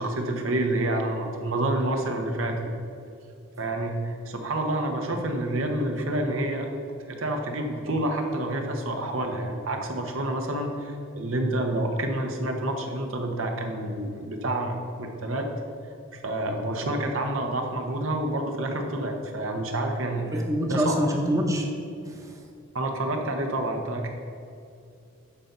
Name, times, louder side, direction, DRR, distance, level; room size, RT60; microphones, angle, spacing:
voice 1, 0.0-2.5 3.6-6.7 7.1-15.5 16.1-20.4 20.7-21.2 22.7-24.1, right 1 dB, 80° right, 3 dB, 1.0 m, -28 dB
voice 2, 20.3-21.6, equal, 15° right, 0 dB, 0.9 m, -25 dB
11.5 x 4.0 x 5.5 m, 2.6 s
head